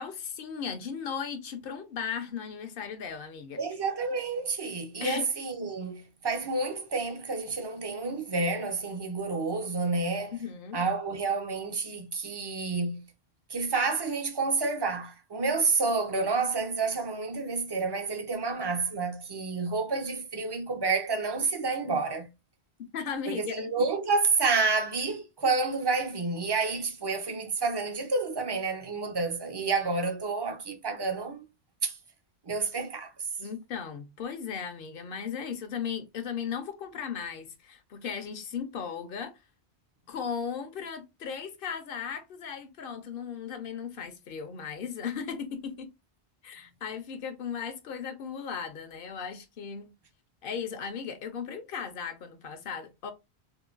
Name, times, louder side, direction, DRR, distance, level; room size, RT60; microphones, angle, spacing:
voice 1, 0.0-3.6 5.0-5.3 10.3-10.8 22.9-23.7 33.4-39.4 40.1-45.9 46.4-49.9 50.4-53.1, left 7 dB, 60° left, 0.8 m, -36 dB
voice 2, 3.6-10.4 10.7-13.0 13.5-22.3 23.3-31.5 31.8-32.0 32.5-33.2, right 4 dB, 35° right, 0.4 m, -29 dB
3.7 x 2.2 x 2.4 m
omnidirectional pair, 1.1 m